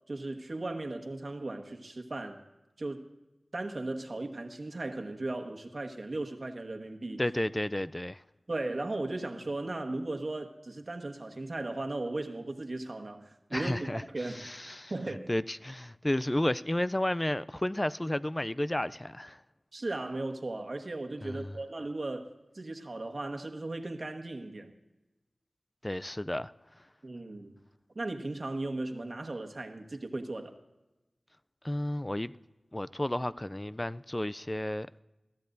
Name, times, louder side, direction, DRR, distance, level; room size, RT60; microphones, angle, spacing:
voice 1, 0.1-2.4 2.8-3.1 3.5-7.3 8.5-14.5 14.9-15.3 19.7-24.7 27.0-27.6 27.9-30.6, right 2 dB, 55° right, 1.4 m, -37 dB
voice 2, 7.2-8.2 13.5-19.4 21.2-21.6 25.8-26.9 31.6-32.3 32.7-34.9, left 1 dB, 20° left, 0.3 m, -32 dB
22.0 x 14.0 x 2.6 m
wide cardioid pair, 60°, 0 cm